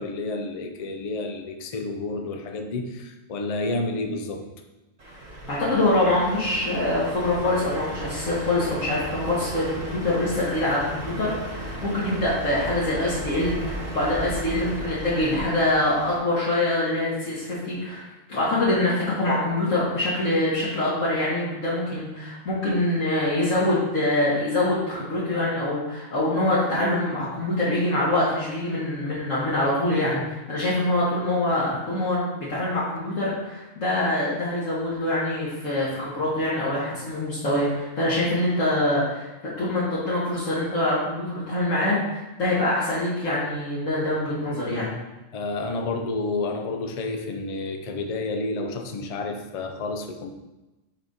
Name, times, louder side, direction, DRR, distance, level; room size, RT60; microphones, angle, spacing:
voice 1, 0.0-4.5 31.7-31.8 45.3-50.3, left 3 dB, 45° left, 5 dB, 0.4 m, -30 dB
Truck, 5.0-16.2, right 1 dB, 55° right, 1.5 m, -35 dB
voice 2, 5.5-18.0 18.3-39.3 39.6-44.9, left 1 dB, 75° left, -9 dB, 1.9 m, -24 dB
5.3 x 5.0 x 4.0 m, 1.0 s
omnidirectional pair, 1.4 m